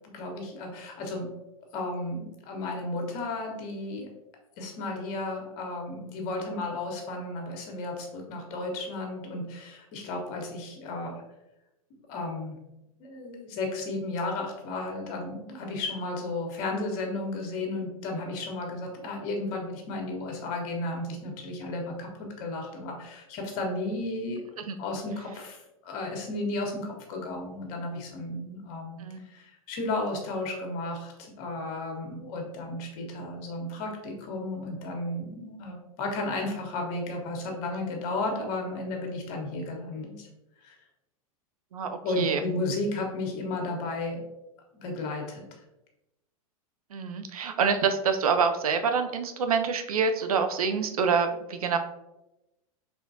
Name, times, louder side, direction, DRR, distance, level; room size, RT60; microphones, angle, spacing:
voice 1, 0.1-1.3 1.7-4.1 4.6-11.2 12.1-12.5 13.0-24.4 24.8-40.3 40.6-40.8 42.0-44.2 44.7-45.4, left 2 dB, 50° left, 1 dB, 1.3 m, -33 dB
voice 2, 41.7-42.4 46.9-51.8, right 5 dB, 80° right, 8 dB, 0.5 m, -26 dB
4.3 x 3.5 x 2.7 m, 0.93 s
hypercardioid pair, 100°, 18 cm